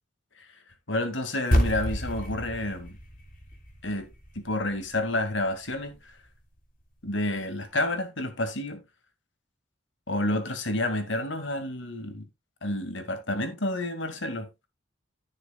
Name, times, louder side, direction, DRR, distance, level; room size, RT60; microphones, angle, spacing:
voice 1, 0.9-3.0 3.8-6.1 7.0-8.8 10.1-12.3 12.6-14.5, left 1 dB, 75° left, 2.1 m, -30 dB
sound 1, 1.5-6.0, equal, 50° left, 3.4 m, -30 dB
14.5 x 6.5 x 2.3 m
head